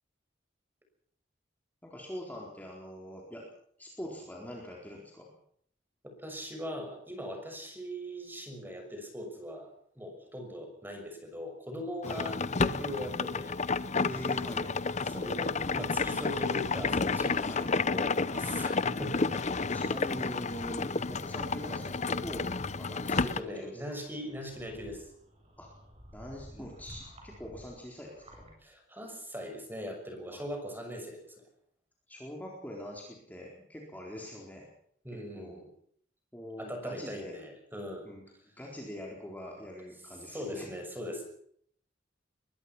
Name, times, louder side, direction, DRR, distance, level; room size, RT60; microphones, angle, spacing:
voice 1, 1.8-3.5 3.8-5.3 12.1-12.3 14.0-14.7 17.4-17.7 19.5-23.8 24.4-24.5 25.6-25.7 26.1-28.5 30.3-30.4 32.1-34.7 35.1-35.6 36.3-37.4 38.0-38.2 38.6-40.7, equal, 10° left, -2 dB, 4.1 m, -43 dB
voice 2, 6.2-13.6 15.1-19.5 23.2-25.1 26.5-26.7 28.6-31.4 35.0-35.7 36.6-38.1 40.3-41.3, equal, 10° right, 4 dB, 6.3 m, -40 dB
sound 1, 12.0-23.4, left 4 dB, 40° left, 0.8 m, -31 dB
sound 2, 20.5-28.6, equal, 35° right, 7.5 m, -54 dB
23.0 x 21.0 x 5.9 m, 0.64 s
head